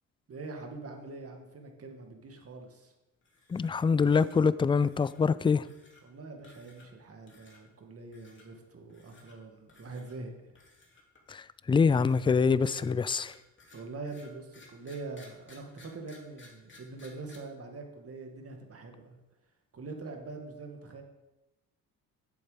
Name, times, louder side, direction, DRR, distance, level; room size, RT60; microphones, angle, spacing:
voice 1, 0.3-2.9 6.0-10.3 13.7-19.2 19.7-21.0, right 3 dB, 45° right, 3 dB, 2.1 m, -44 dB
sound 1, 3.2-3.8 4.1-4.4 4.8-5.2 5.6-6.0 6.4-7.0 7.3-7.6 8.1-8.4 8.9-9.4 9.7-10.2 10.5-11.5 11.9-17.4, left 3 dB, 35° left, 2.9 m, -57 dB
voice 2, 3.5-5.7 11.3-13.3, left 5 dB, 15° left, 17 dB, 0.4 m, -25 dB
8.1 x 7.2 x 5.1 m, 1.0 s
supercardioid pair, 65°, 34 cm